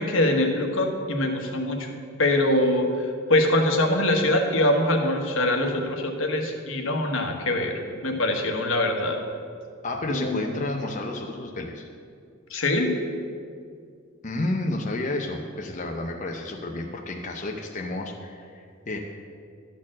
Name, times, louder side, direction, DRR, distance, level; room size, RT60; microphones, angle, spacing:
voice 1, 0.0-1.9 2.2-7.7 8.0-9.2 10.1-10.5 12.5-12.9, left 1 dB, 70° left, 3 dB, 1.3 m, -23 dB
voice 2, 9.8-11.9 14.2-19.0, left 2 dB, 35° left, 1 dB, 0.7 m, -31 dB
12.5 x 4.4 x 7.4 m, 2.3 s
head